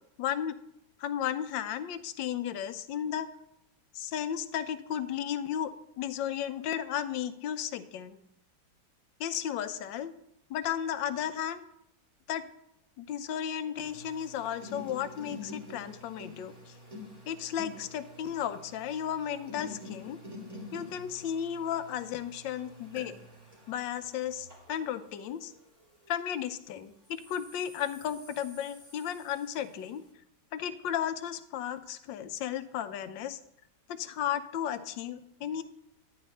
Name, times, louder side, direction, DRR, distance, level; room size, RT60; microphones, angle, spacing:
voice 1, 0.2-0.6 1.0-3.3 3.9-8.2 9.2-10.1 10.5-11.6 12.3-12.4 13.0-16.7 17.3-20.2 20.7-23.2 23.7-25.5 26.1-30.0 30.5-33.4 33.9-35.6, left 9 dB, 80° left, 11 dB, 1.3 m, -34 dB
sound 1, 13.8-26.5 27.0-29.9, left 2 dB, 20° right, 2.3 m, -48 dB
11.5 x 9.5 x 3.2 m, 0.78 s
omnidirectional pair, 2.0 m